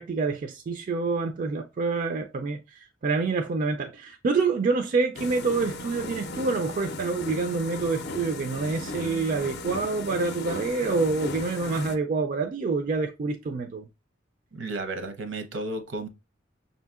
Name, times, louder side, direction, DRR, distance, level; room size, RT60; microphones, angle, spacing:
voice 1, 0.0-13.9, right 4 dB, 45° right, 0.3 m, -27 dB
sound 1, 5.1-12.0, left 2 dB, 60° left, 0.5 m, -36 dB
voice 2, 14.5-16.1, right 2 dB, 75° right, 0.7 m, -33 dB
5.9 x 2.7 x 2.3 m
head